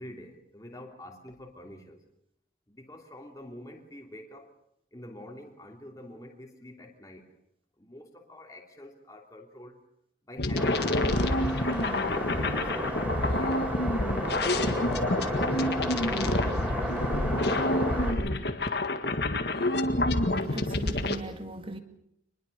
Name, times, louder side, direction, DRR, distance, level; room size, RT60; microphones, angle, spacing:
voice 1, 0.0-2.0 2.7-4.5 4.9-7.3 7.8-9.8 10.3-10.9 11.6-13.7 15.0-16.9, left 1 dB, 20° left, 3.0 m, -46 dB
sound 1, 10.4-21.2, left 1 dB, 55° left, 1.8 m, -28 dB
sound 2, 10.6-18.1, equal, 10° right, 4.9 m, -33 dB
voice 2, 20.5-21.8, right 2 dB, 30° right, 2.0 m, -38 dB
26.5 x 21.0 x 6.7 m
head